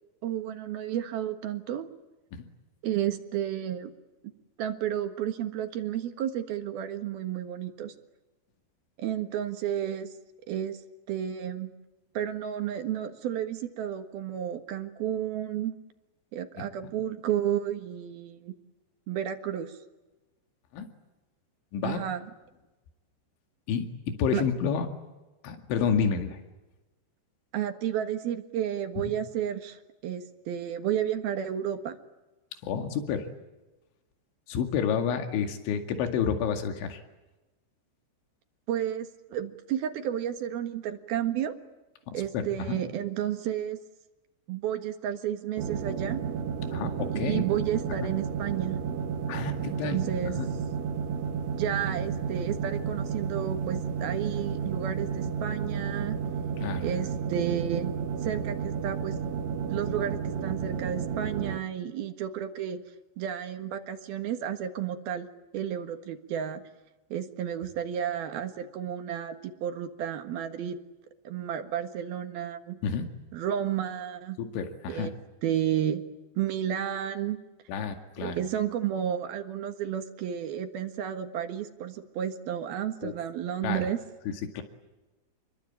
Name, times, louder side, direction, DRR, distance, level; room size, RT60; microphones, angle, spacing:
voice 1, 0.2-1.9 2.8-3.9 4.6-7.9 9.0-10.1 10.5-10.8 11.1-11.7 12.1-15.7 16.3-18.5 19.1-19.7 21.8-22.3 24.3-24.4 27.5-32.0 38.7-41.6 42.1-43.8 44.5-46.2 47.1-48.8 49.7-50.4 51.5-56.2 56.8-57.9 58.2-59.2 59.7-62.8 63.2-65.3 65.5-66.6 67.1-70.8 71.2-72.8 73.3-74.4 74.9-75.1 75.4-76.0 76.4-77.4 78.2-84.0, right 10 dB, 65° right, 7 dB, 3.1 m, -32 dB
voice 2, 21.7-22.0 23.7-24.9 25.4-26.4 32.6-33.3 34.5-37.0 42.1-42.8 46.7-47.4 49.3-50.0 50.4-50.5 56.6-56.9 72.8-73.1 74.4-75.1 77.7-78.4 83.0-83.1 83.6-83.8 84.5-84.6, left 6 dB, 80° left, 6 dB, 4.5 m, -29 dB
sound 1, 45.6-61.6, right 6 dB, 85° right, 4.0 m, -32 dB
29.0 x 22.5 x 8.9 m, 1.1 s
omnidirectional pair, 5.3 m